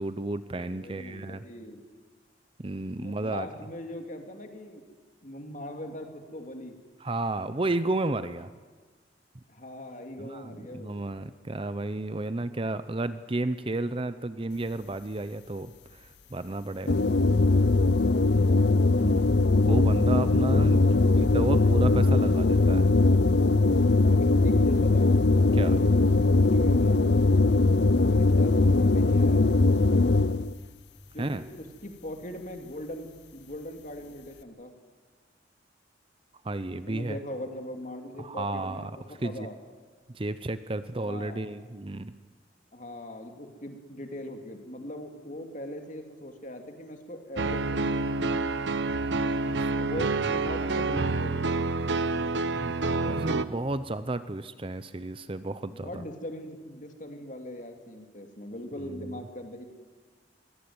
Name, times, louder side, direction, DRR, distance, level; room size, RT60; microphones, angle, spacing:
voice 1, 0.0-1.4 2.6-3.5 7.0-8.5 10.2-17.0 18.9-22.9 25.5-25.8 31.2-31.4 36.4-37.2 38.2-38.9 39.2-39.5 40.1-42.1 49.6-50.1 52.6-52.7 53.0-56.0 58.8-59.2, right 2 dB, 30° right, 13 dB, 0.7 m, -32 dB
voice 2, 0.7-1.8 3.0-4.8 5.2-6.7 9.5-11.0 18.3-18.8 20.7-21.0 24.0-25.2 26.1-27.0 28.0-29.6 31.1-34.7 36.9-39.5 41.0-41.5 42.7-48.0 49.8-51.6 55.7-59.6, left 1 dB, 45° left, 4 dB, 2.9 m, -40 dB
sound 1, 16.9-30.5, left 3 dB, 65° left, 0.7 m, -21 dB
sound 2, 47.4-53.4, right 3 dB, 75° right, 1.0 m, -28 dB
22.5 x 18.5 x 9.6 m, 1.4 s
head